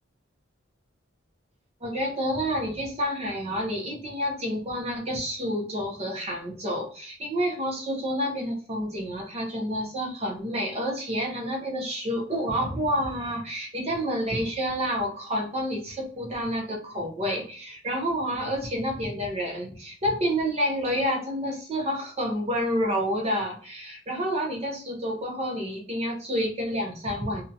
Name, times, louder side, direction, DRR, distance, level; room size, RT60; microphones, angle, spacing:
voice 1, 1.8-27.4, equal, 30° right, 1 dB, 0.6 m, -29 dB
2.6 x 2.2 x 2.7 m, 0.42 s
head